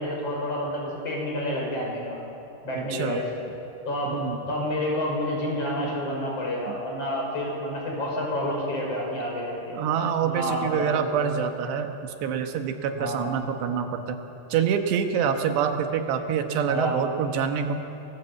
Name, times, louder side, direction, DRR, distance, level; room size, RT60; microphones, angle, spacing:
voice 1, 0.0-2.2 2.6-3.4 3.9-9.8 10.2-11.3 12.9-13.3 16.2-16.3 16.7-16.9, left 1 dB, 35° left, -2 dB, 6.5 m, -29 dB
voice 2, 2.8-3.2 4.1-4.4 6.7-6.8 9.7-14.2 14.5-17.8, right 7 dB, 80° right, 5 dB, 3.4 m, -26 dB
27.5 x 19.0 x 8.3 m, 2.9 s
omnidirectional pair, 4.9 m